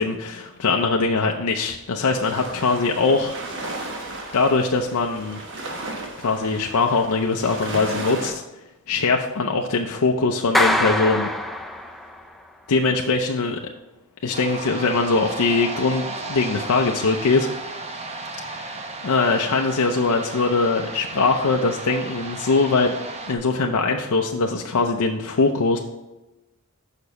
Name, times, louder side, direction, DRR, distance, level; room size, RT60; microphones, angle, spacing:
voice 1, 0.0-3.4 4.3-5.4 6.2-8.4 8.9-11.3 12.7-13.6 14.2-17.5 18.5-22.9 23.3-25.8, left 3 dB, 85° left, 2 dB, 0.6 m, -22 dB
sound 1, 2.1-8.3, right 2 dB, 55° right, 1.1 m, -34 dB
Clapping, 10.5-12.3, left 1 dB, ahead, 0.4 m, -23 dB
sound 2, 14.3-23.4, right 2 dB, 30° right, 0.7 m, -34 dB
6.8 x 5.8 x 4.0 m, 1.0 s
head